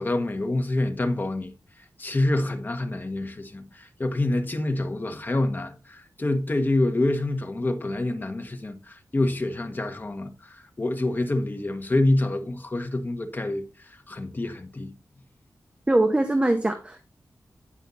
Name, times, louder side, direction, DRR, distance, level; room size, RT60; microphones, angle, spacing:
voice 1, 0.0-1.5 2.0-14.9, left 2 dB, 30° left, 1.5 m, -27 dB
voice 2, 15.9-17.0, right 1 dB, 20° right, 1.0 m, -22 dB
9.9 x 5.7 x 4.2 m
wide cardioid pair, 80°, 6 cm